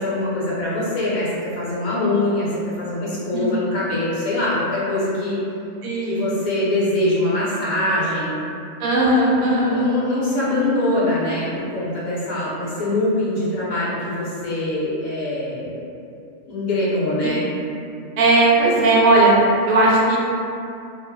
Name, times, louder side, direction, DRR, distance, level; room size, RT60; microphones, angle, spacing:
voice 1, 0.0-5.4 6.0-8.4 9.4-15.8 16.5-17.4, left 1 dB, 85° left, -8 dB, 1.2 m, -23 dB
voice 2, 5.8-6.3 8.8-9.8 18.2-19.3 19.7-20.2, right 2 dB, 85° right, -4 dB, 1.0 m, -17 dB
2.8 x 2.0 x 2.2 m, 2.5 s
omnidirectional pair, 1.4 m